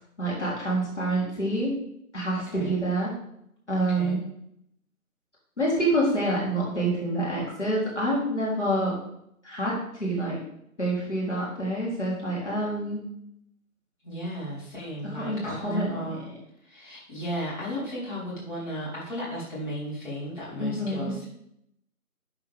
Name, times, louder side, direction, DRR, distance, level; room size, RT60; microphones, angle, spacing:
voice 1, 0.2-1.8 2.1-3.1 3.7-4.2 5.6-9.0 9.4-10.4 10.8-13.0 15.0-16.2 20.6-21.1, right 1 dB, 50° left, -6 dB, 3.8 m, -27 dB
voice 2, 3.8-4.2 14.0-16.2 16.6-21.3, equal, 35° left, -7 dB, 4.1 m, -35 dB
11.5 x 8.2 x 3.6 m, 0.76 s
figure-of-eight pair, 165°, 44 cm